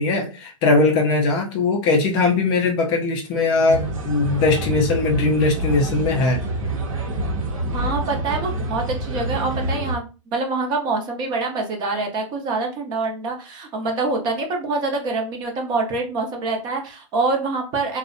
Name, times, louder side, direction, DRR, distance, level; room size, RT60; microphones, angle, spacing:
voice 1, 0.0-6.4, left 3 dB, 30° left, 0.4 m, -20 dB
sound 1, 3.7-9.9, right 1 dB, 75° right, 0.7 m, -27 dB
voice 2, 7.7-10.1 10.3-18.0, right 3 dB, 25° right, 0.5 m, -25 dB
2.5 x 2.0 x 2.5 m
hypercardioid pair, 140°, 17 cm